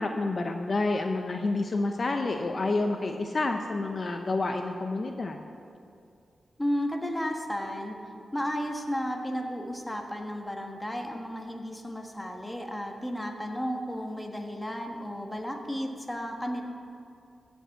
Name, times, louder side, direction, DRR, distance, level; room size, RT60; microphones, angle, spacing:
voice 1, 0.0-5.5, left 2 dB, 45° left, 4 dB, 0.6 m, -29 dB
voice 2, 6.6-8.0 8.3-16.6, equal, 10° left, 3 dB, 1.3 m, -33 dB
13.5 x 5.4 x 7.9 m, 2.5 s
cardioid pair, 80°, 0 cm